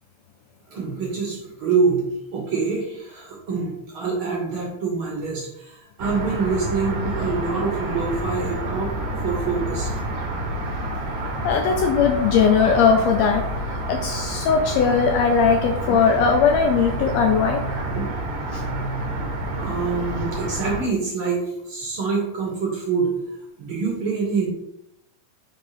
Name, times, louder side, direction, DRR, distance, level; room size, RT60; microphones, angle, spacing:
voice 1, 0.7-2.0 2.3-8.9 9.2-9.9 15.9-16.0 17.9-18.1 19.5-23.1 23.6-24.5, right 4 dB, 55° right, -2 dB, 1.6 m, -25 dB
sound 1, 6.0-20.8, right 1 dB, 70° right, 2.3 m, -28 dB
voice 2, 11.4-13.4 13.7-17.6 18.5-18.6, left 6 dB, 80° left, 4 dB, 1.5 m, -19 dB
5.3 x 3.7 x 5.7 m, 0.84 s
omnidirectional pair, 3.5 m